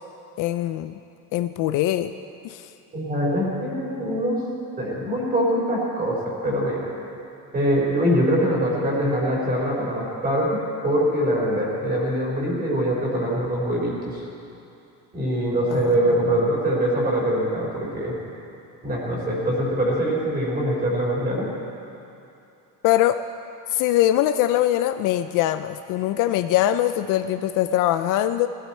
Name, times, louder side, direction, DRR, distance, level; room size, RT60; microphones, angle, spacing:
voice 1, 0.4-0.9 1.3-2.1 2.4-2.7 15.7-16.4 22.8-23.2 23.7-28.5, left 13 dB, 55° left, 11 dB, 0.4 m, -22 dB
voice 2, 2.9-4.4 4.8-6.9 7.5-14.2 15.1-18.1 18.8-21.5, equal, 25° right, -4 dB, 3.9 m, -23 dB
19.5 x 15.0 x 4.3 m, 2.8 s
cardioid pair, 175°, 38 cm